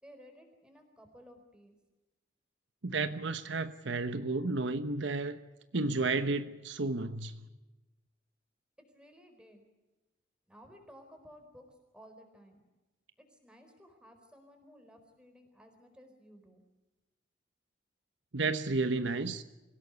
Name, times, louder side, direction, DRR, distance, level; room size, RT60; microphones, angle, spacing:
voice 1, 0.0-1.8 8.8-9.6 10.5-12.6 13.2-16.6, equal, 5° right, 5 dB, 4.4 m, -56 dB
voice 2, 2.8-5.4 5.7-7.4 18.3-19.4, right 3 dB, 70° right, 10 dB, 1.0 m, -32 dB
25.5 x 17.0 x 8.2 m, 1.1 s
head